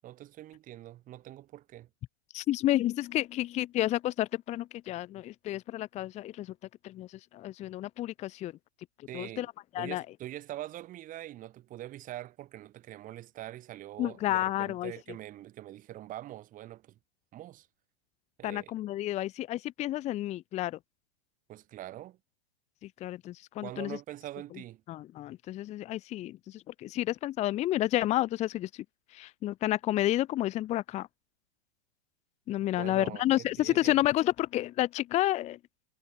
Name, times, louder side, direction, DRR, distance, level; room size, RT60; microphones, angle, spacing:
voice 1, 0.0-1.9 9.1-9.5 9.8-17.0 17.3-17.7 18.4-18.7 21.5-22.2 23.6-24.8 32.8-34.0, right 14 dB, 25° right, 3.9 m, -44 dB
voice 2, 2.3-6.5 6.8-8.5 9.1-9.5 9.7-10.0 14.0-14.9 18.4-20.8 22.8-24.0 24.9-28.8 29.1-31.1 32.5-35.6, left 14 dB, 20° left, 1.0 m, -30 dB
hypercardioid pair, 150°, 31 cm